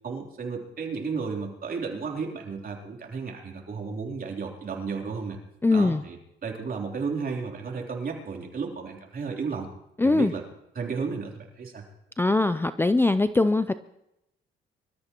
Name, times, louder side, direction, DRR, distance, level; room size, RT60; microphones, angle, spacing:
voice 1, 0.0-5.4 5.7-9.7 10.0-10.4 10.7-11.8, right 5 dB, 50° right, 1 dB, 3.4 m, -33 dB
voice 2, 5.6-6.0 10.0-10.3 12.2-13.7, left 2 dB, 10° left, 12 dB, 0.5 m, -21 dB
24.5 x 13.5 x 3.0 m, 0.83 s
cardioid pair, 90°, 20 cm